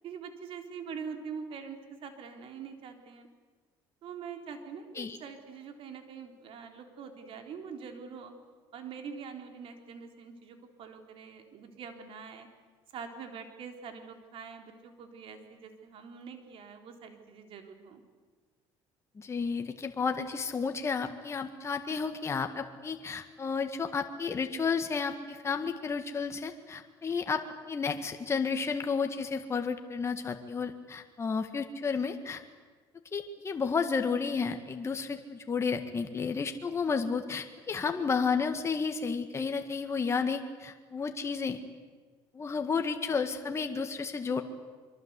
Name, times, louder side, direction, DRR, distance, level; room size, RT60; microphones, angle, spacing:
voice 1, 0.0-3.3 4.0-8.3 8.7-12.5 12.9-18.0, right 6 dB, 60° right, 5 dB, 3.7 m, -44 dB
voice 2, 19.2-27.4 27.7-32.4 33.1-41.6 42.3-44.4, left 5 dB, 25° left, 6 dB, 1.8 m, -32 dB
24.0 x 24.0 x 8.3 m, 1.4 s
cardioid pair, 110°, 11 cm